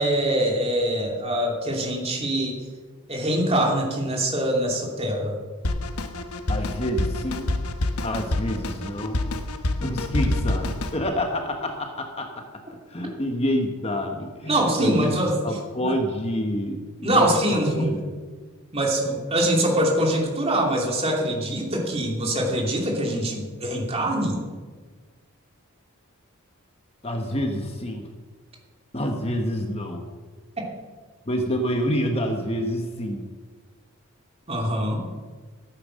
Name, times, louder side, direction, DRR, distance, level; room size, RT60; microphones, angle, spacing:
voice 1, 0.0-2.6 3.1-5.4 14.5-15.3 15.8-15.9 17.0-17.9 18.7-24.4 34.5-35.0, right 1 dB, 30° right, 0 dB, 2.8 m, -23 dB
Drum kit, 5.6-11.0, left 1 dB, 90° left, 1.1 m, -27 dB
voice 2, 6.5-7.5 8.0-9.2 9.8-12.4 12.9-15.2 15.4-18.1 27.0-28.1 28.9-30.1 31.2-33.2, equal, 30° left, 4 dB, 1.2 m, -28 dB
14.0 x 9.2 x 6.4 m, 1.4 s
head